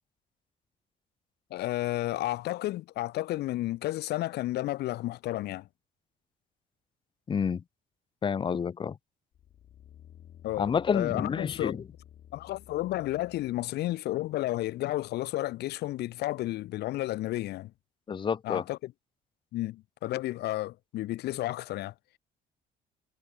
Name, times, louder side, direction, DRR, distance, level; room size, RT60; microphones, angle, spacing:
voice 1, 1.5-5.7 10.4-11.8 12.3-17.7 18.4-18.9 19.5-21.9, left 16 dB, 75° left, 2.0 m, -32 dB
voice 2, 7.3-7.6 8.2-9.0 10.6-11.8 18.1-18.6, left 6 dB, 30° left, 0.7 m, -29 dB
sound 1, 9.3-13.7 14.2-14.3, left 11 dB, 55° left, 2.6 m, -53 dB
cardioid pair, 110°, 17 cm